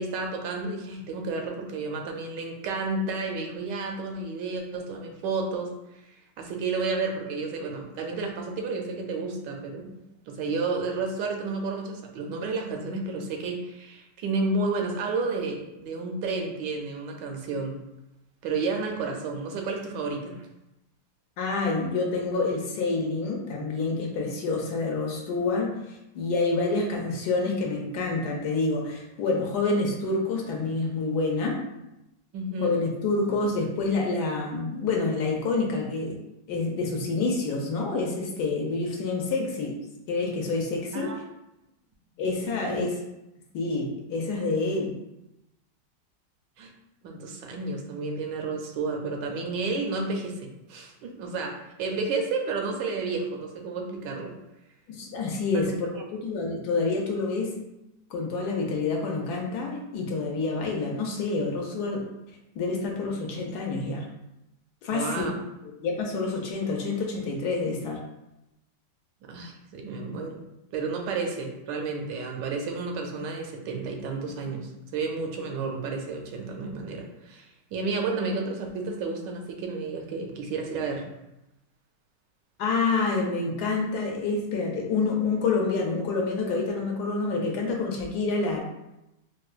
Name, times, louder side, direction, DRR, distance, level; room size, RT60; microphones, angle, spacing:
voice 1, 0.0-5.7 6.4-9.9 10.3-17.7 18.4-20.4 32.3-32.7 40.9-41.2 42.7-42.8 46.6-46.7 47.0-54.3 55.5-56.0 64.9-65.3 69.2-70.5 70.7-81.1, right 3 dB, 80° right, 2 dB, 1.2 m, -31 dB
voice 2, 21.4-31.6 32.6-36.2 36.5-39.8 40.1-41.1 42.2-42.9 43.5-44.9 54.9-55.9 56.2-57.6 58.1-62.0 62.5-64.1 64.8-65.3 65.6-68.0 82.6-88.6, left 3 dB, 75° left, 0 dB, 1.1 m, -27 dB
4.3 x 2.2 x 2.4 m, 0.91 s
omnidirectional pair, 1.9 m